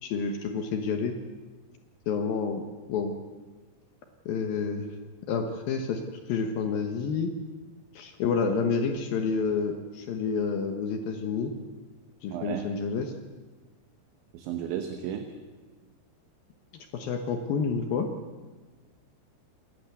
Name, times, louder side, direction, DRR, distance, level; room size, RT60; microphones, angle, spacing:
voice 1, 0.0-1.2 2.1-2.6 2.9-3.1 4.3-4.9 5.3-6.0 6.3-7.3 7.9-11.5 12.2-13.1 16.9-18.1, left 5 dB, 75° left, 5 dB, 2.2 m, -29 dB
voice 2, 12.3-12.6 14.3-15.3, right 9 dB, 75° right, 6 dB, 3.3 m, -33 dB
27.5 x 12.0 x 8.3 m, 1.3 s
omnidirectional pair, 5.9 m